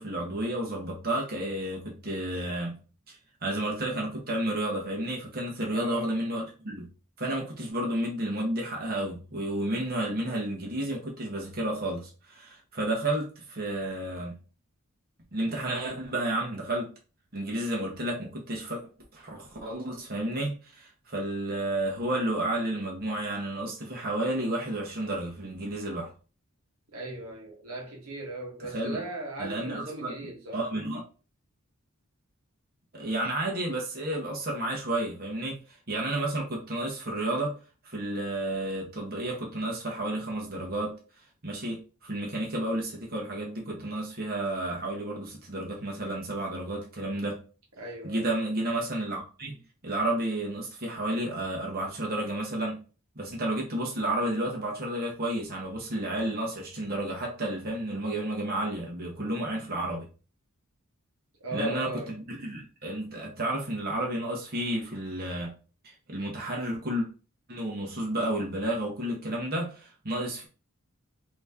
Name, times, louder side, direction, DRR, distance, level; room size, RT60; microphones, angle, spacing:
voice 1, 0.0-2.8 3.1-6.9 7.2-14.3 15.3-16.9 17.3-18.8 19.1-26.1 28.7-29.0 29.4-30.1 30.5-31.0 32.9-37.6 37.8-41.0 41.4-47.4 48.0-49.6 49.8-52.8 53.1-60.0 61.5-61.9 62.4-65.5 65.8-67.1 67.5-70.5, right 1 dB, 45° right, 1.3 m, -31 dB
voice 2, 5.7-6.2 26.9-30.7 47.8-48.3 61.4-62.2, right 1 dB, 80° right, 1.4 m, -37 dB
4.0 x 3.1 x 3.5 m
head